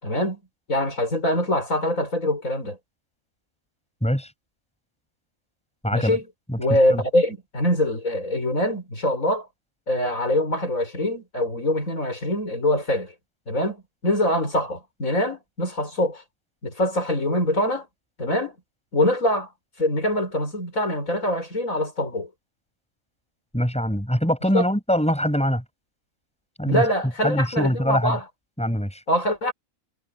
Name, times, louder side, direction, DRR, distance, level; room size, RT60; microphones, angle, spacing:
voice 1, 0.0-0.4 0.7-2.8 5.9-6.3 6.6-9.5 9.9-13.1 13.5-16.2 16.6-17.9 18.2-18.5 18.9-19.5 19.8-22.3 24.5-24.6 26.7-28.2 29.1-29.5, left 1 dB, 70° left, 6.5 m, -24 dB
voice 2, 4.0-4.3 5.8-6.2 6.5-7.0 23.5-25.6 26.6-26.8 27.2-28.2 28.6-29.0, equal, 5° left, 7.8 m, -23 dB
omnidirectional pair, 1.5 m